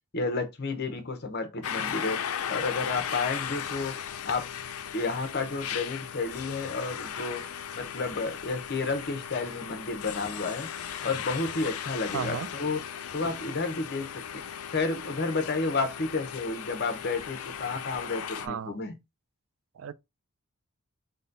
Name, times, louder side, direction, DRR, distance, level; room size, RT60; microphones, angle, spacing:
voice 1, 0.1-2.2 2.5-4.0 4.2-4.5 4.9-7.5 7.7-10.7 11.0-12.8 13.1-14.4 14.7-18.9, left 3 dB, 45° left, 0.8 m, -31 dB
sound 1, 1.6-18.5, left 8 dB, 80° left, 0.4 m, -37 dB
voice 2, 12.1-12.5 18.4-18.8 19.8-19.9, right 7 dB, 60° right, 0.3 m, -34 dB
4.0 x 2.2 x 3.9 m
head